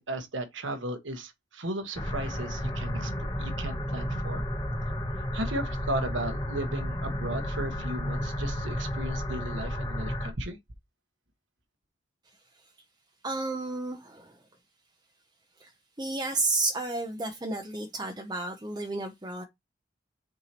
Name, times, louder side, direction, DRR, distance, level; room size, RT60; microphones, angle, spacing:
voice 1, 0.0-3.1 3.4-4.5 5.3-10.6, right 1 dB, 85° right, 1.5 m, -35 dB
sound 1, 2.0-10.3, equal, 20° left, 1.1 m, -32 dB
voice 2, 13.2-14.4 15.6-15.7 16.0-19.4, right 2 dB, 20° right, 0.7 m, -31 dB
6.8 x 4.7 x 2.9 m
head